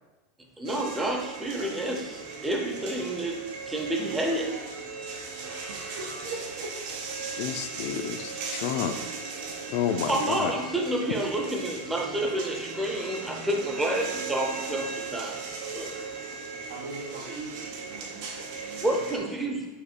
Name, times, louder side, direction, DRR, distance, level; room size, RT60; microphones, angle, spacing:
voice 1, 0.6-3.4 3.7-4.5 10.1-15.5 15.7-16.1 18.8-19.7, right 1 dB, 10° right, 1 dB, 0.5 m, -29 dB
sound 1, 0.7-19.2, right 4 dB, 55° right, 0.8 m, -37 dB
voice 2, 5.7-6.7 16.7-19.5, right 3 dB, 85° right, -3 dB, 0.7 m, -41 dB
voice 3, 7.4-9.0 9.7-10.5, left 9 dB, 55° left, 9 dB, 0.3 m, -30 dB
5.0 x 2.3 x 4.4 m, 1.1 s
supercardioid pair, 155°, 0 cm